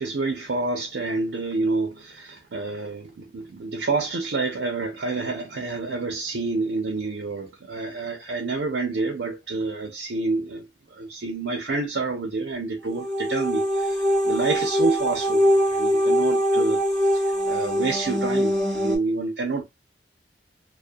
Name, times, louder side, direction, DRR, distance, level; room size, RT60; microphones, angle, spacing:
voice 1, 0.0-10.7 11.0-16.8 17.1-19.7, right 3 dB, 75° right, 0.5 m, -28 dB
sound 1, 12.9-19.0, equal, 5° left, 0.7 m, -23 dB
2.2 x 2.1 x 2.5 m
head